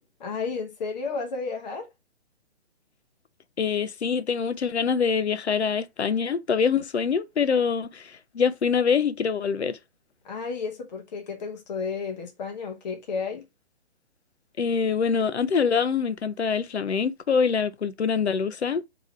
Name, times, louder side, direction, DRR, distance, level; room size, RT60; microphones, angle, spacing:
voice 1, 0.2-1.9 10.2-13.4, left 4 dB, 40° left, 1.0 m, -32 dB
voice 2, 3.6-9.8 14.6-18.8, left 6 dB, 85° left, 0.5 m, -25 dB
3.8 x 2.9 x 3.0 m
figure-of-eight pair, 130°, 32 cm